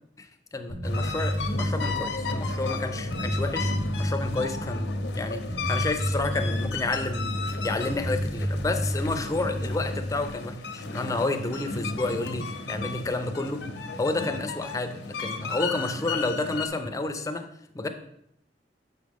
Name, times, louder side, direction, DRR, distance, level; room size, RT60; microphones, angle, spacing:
voice 1, 0.2-3.7 4.0-7.3 7.6-13.6 14.0-17.9, left 2 dB, 20° left, 7 dB, 0.5 m, -30 dB
Bass guitar, 0.7-10.3, equal, 65° right, 1.5 m, -31 dB
sound 1, 0.8-16.7, left 4 dB, 75° left, 0.6 m, -34 dB
6.6 x 5.0 x 3.4 m, 0.74 s
head